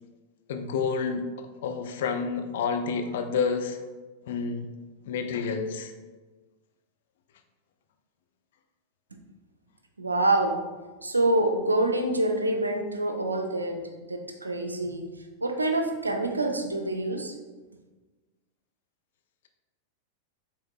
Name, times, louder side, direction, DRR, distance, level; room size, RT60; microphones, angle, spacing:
voice 1, 0.5-1.3 1.6-3.8 4.3-4.7 5.1-5.9, left 5 dB, 55° left, 5 dB, 0.5 m, -29 dB
voice 2, 10.0-10.7 11.0-13.8 14.1-15.1 15.4-17.3, right 2 dB, 80° right, 5 dB, 0.5 m, -26 dB
7.1 x 3.2 x 2.3 m, 1.3 s
figure-of-eight pair, 90°, 0 cm